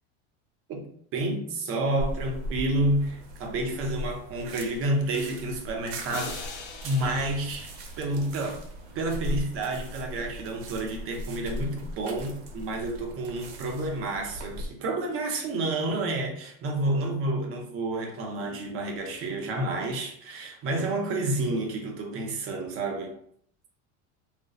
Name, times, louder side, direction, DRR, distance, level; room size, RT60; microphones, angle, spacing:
voice 1, 1.1-6.4 6.8-7.7 8.0-8.6 8.9-23.1, right 2 dB, 40° right, 0.6 m, -29 dB
sound 1, 2.0-14.7, equal, 75° right, 0.8 m, -38 dB
sound 2, 6.1-8.8, left 5 dB, 80° left, 0.7 m, -42 dB
2.4 x 2.0 x 3.9 m
supercardioid pair, 135°, 36 cm